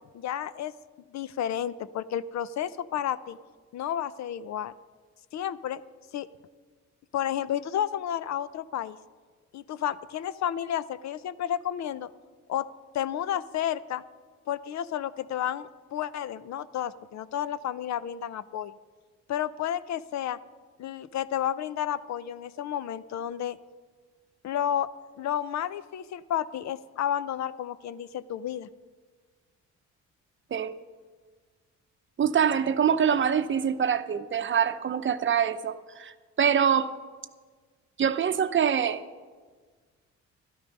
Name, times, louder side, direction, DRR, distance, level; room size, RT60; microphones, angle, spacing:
voice 1, 0.1-0.7 1.1-3.4 3.7-4.7 5.3-5.8 6.1-6.3 7.1-9.0 9.5-12.1 12.5-12.7 12.9-14.0 14.5-18.7 19.3-20.4 20.8-23.6 24.4-24.9 25.2-28.7, left 10 dB, 65° left, 16 dB, 0.6 m, -31 dB
voice 2, 32.2-36.9 38.0-39.0, right 8 dB, 40° right, 11 dB, 0.7 m, -25 dB
12.5 x 12.5 x 5.4 m, 1.5 s
cardioid pair, 90°, 30 cm